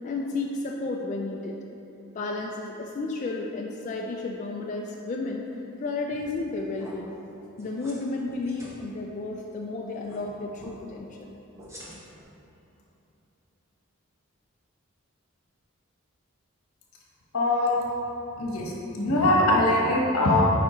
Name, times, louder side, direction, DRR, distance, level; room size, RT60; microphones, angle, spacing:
voice 1, 0.0-1.6 2.1-5.5 5.8-7.2 7.6-11.4, left 3 dB, 35° left, -1 dB, 0.3 m, -32 dB
sound 1, 6.1-6.5 6.8-6.9 7.6-8.0 8.3-8.7 10.0-10.2 10.6-10.7 11.6-12.2, equal, 15° right, 0.9 m, -46 dB
voice 2, 17.3-17.8 18.4-20.5, left 1 dB, 80° left, -3 dB, 1.2 m, -22 dB
8.6 x 4.8 x 3.1 m, 3.0 s
head